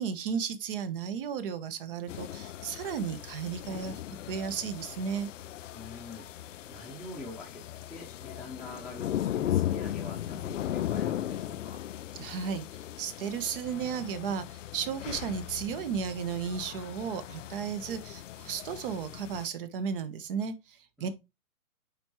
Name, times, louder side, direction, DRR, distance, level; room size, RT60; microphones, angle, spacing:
voice 1, 0.0-3.9 4.3-5.3 12.1-12.6 13.0-21.1, right 7 dB, 35° right, 1.2 m, -34 dB
sound 1, 2.1-19.5, left 12 dB, 60° left, 0.5 m, -37 dB
voice 2, 5.7-11.8 21.0-21.1, left 2 dB, ahead, 1.0 m, -45 dB
9.4 x 4.5 x 3.2 m
hypercardioid pair, 135°, 44 cm